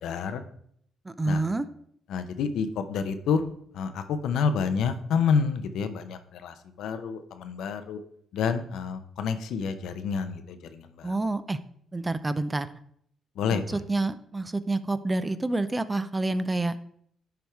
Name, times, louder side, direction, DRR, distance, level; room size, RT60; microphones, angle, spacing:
voice 1, 0.0-0.4 1.3-1.4 2.1-3.4 3.7-8.0 8.3-11.1 13.4-13.8, left 6 dB, 75° left, 9 dB, 0.7 m, -28 dB
voice 2, 1.0-1.7 11.0-11.6 11.9-12.7 13.5-16.8, right 2 dB, 20° right, 13 dB, 0.5 m, -28 dB
10.5 x 3.5 x 4.5 m, 0.68 s
cardioid pair, 85°, 0 cm